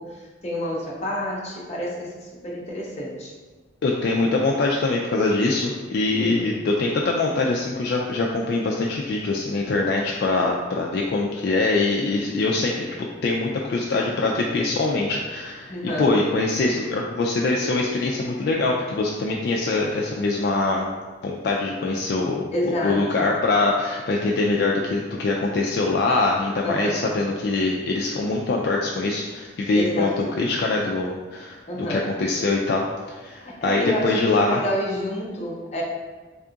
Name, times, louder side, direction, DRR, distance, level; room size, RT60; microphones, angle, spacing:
voice 1, 0.0-2.1 2.4-3.3 6.2-6.6 15.7-16.1 22.5-23.3 26.6-27.1 29.7-30.1 31.7-32.0 33.4-35.8, equal, 35° left, -3 dB, 0.7 m, -29 dB
voice 2, 3.8-15.7 16.0-20.9 21.2-34.6, left 3 dB, 55° left, -1 dB, 0.3 m, -23 dB
3.5 x 2.3 x 3.8 m, 1.3 s
head